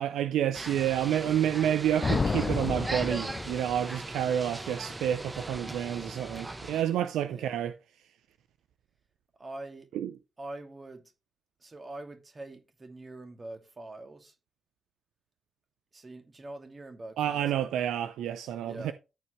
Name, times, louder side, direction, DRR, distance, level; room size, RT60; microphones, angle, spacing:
voice 1, 0.0-7.7 9.9-10.1 17.2-18.9, right 10 dB, 75° right, 0.5 m, -29 dB
sound 1, 0.5-6.8, right 2 dB, 20° right, 1.1 m, -39 dB
sound 2, 2.0-4.0, left 4 dB, 45° left, 0.4 m, -31 dB
voice 2, 7.3-7.7 9.4-9.9 10.4-11.0 11.6-14.3 15.9-17.7 18.6-18.9, right 2 dB, 35° right, 2.4 m, -44 dB
13.5 x 4.8 x 3.2 m
hypercardioid pair, 40°, 0 cm